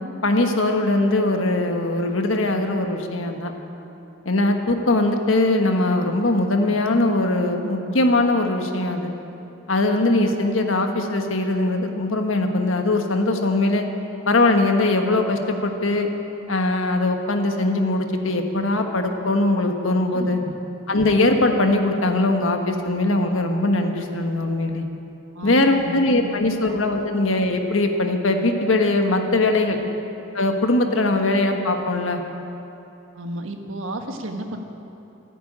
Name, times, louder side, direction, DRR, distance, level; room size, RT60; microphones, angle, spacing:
voice 1, 0.2-3.5 4.2-9.1 9.7-13.8 14.3-16.1 16.5-20.4 20.9-24.8 25.4-29.8 30.3-32.2, left 2 dB, 85° left, 4 dB, 1.4 m, -21 dB
voice 2, 20.1-20.6 25.3-26.4 29.7-29.8 33.1-34.6, right 1 dB, 85° right, 4 dB, 1.4 m, -32 dB
15.0 x 10.0 x 8.7 m, 2.9 s
head